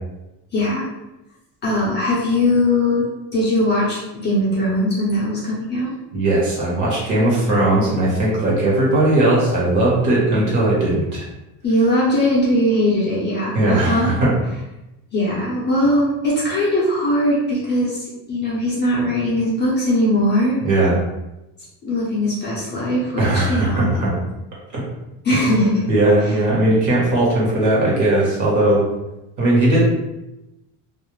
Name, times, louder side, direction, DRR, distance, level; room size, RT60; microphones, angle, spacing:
voice 1, 0.5-0.9 1.6-3.0 3.3-5.9 11.6-14.1 15.1-20.6 21.8-23.9 25.2-25.8, left 1 dB, 25° left, -7 dB, 0.5 m, -20 dB
voice 2, 6.1-11.2 13.5-14.3 20.6-21.0 23.2-24.1 25.3-25.4 25.9-28.8 29.4-29.8, right 1 dB, 45° right, -5 dB, 1.0 m, -18 dB
2.3 x 2.0 x 2.9 m, 0.94 s
cardioid pair, 170°, 41 cm